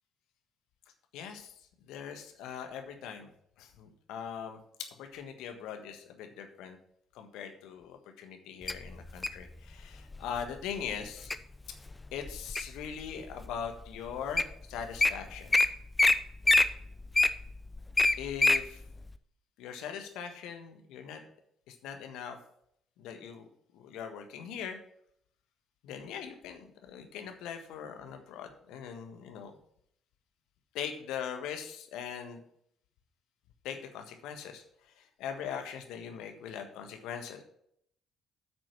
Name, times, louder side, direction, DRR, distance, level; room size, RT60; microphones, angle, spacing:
voice 1, 1.1-3.3 3.6-6.8 7.1-11.3 12.1-15.6 18.2-18.8 19.6-21.2 21.7-22.4 23.0-24.8 25.8-29.5 30.7-32.4 33.6-37.4, left 8 dB, 70° left, 5 dB, 1.4 m, -41 dB
Wild animals, 8.7-9.4 10.1-10.4 10.9-11.4 11.9-12.8 13.4-13.5 14.1-14.2 14.4-14.5 14.8-15.1 15.5-15.7 16.0-16.1 16.4-18.6 19.1-19.2, left 2 dB, 20° left, 0.7 m, -24 dB
9.4 x 6.1 x 5.8 m, 0.69 s
hypercardioid pair, 45°, 0 cm